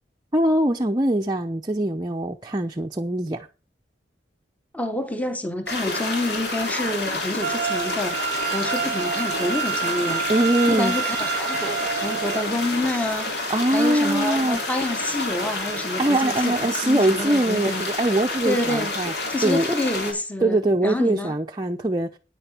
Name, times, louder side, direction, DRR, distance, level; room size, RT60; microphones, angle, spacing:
voice 1, 0.3-3.5 10.3-11.0 13.5-14.6 16.0-19.1 19.4-19.7 20.4-22.2, right 1 dB, 20° right, 0.7 m, -22 dB
voice 2, 4.7-10.2 10.7-17.8 18.4-18.9 19.3-21.3, left 1 dB, 10° left, 1.2 m, -28 dB
sound 1, 5.7-20.1, left 2 dB, 60° left, 3.5 m, -29 dB
sound 2, 7.4-12.4, right 8 dB, 60° right, 0.5 m, -28 dB
9.9 x 9.7 x 4.5 m
head